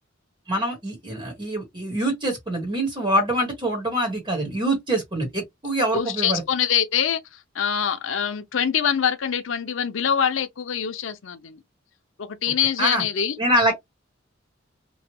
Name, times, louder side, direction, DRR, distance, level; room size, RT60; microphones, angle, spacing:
voice 1, 0.5-6.4 12.8-13.0 13.4-13.7, right 1 dB, 25° right, 1.2 m, -24 dB
voice 2, 5.9-7.2 7.5-11.6 12.2-13.4, left 8 dB, 90° left, 0.6 m, -24 dB
3.1 x 2.2 x 2.9 m
head